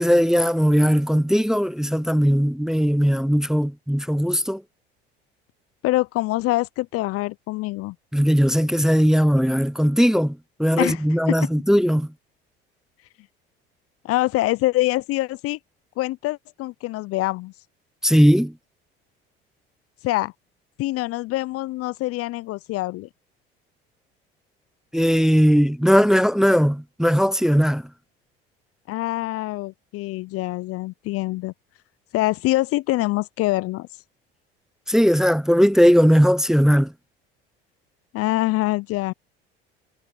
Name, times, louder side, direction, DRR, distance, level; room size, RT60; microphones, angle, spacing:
voice 1, 0.0-4.6 8.1-12.1 18.0-18.5 24.9-27.8 34.9-36.9, equal, ahead, 0.7 m, -18 dB
voice 2, 5.8-8.0 10.8-11.0 11.3-11.5 14.0-15.6 16.0-17.5 20.0-20.3 20.8-23.1 28.9-31.5 32.1-33.9 38.1-39.1, left 18 dB, 50° left, 0.5 m, -25 dB
hypercardioid pair, 70°, 30 cm